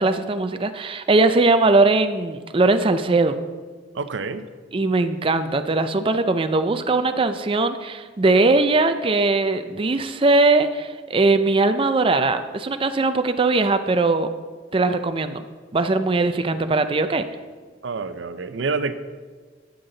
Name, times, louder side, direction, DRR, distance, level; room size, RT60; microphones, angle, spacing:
voice 1, 0.0-3.3 4.7-14.3 14.7-15.4 15.7-17.2, right 3 dB, 30° right, 9 dB, 0.4 m, -20 dB
voice 2, 3.9-4.5 8.2-8.6 17.8-18.9, right 4 dB, 90° right, 11 dB, 0.6 m, -28 dB
11.5 x 8.2 x 3.9 m, 1.5 s
head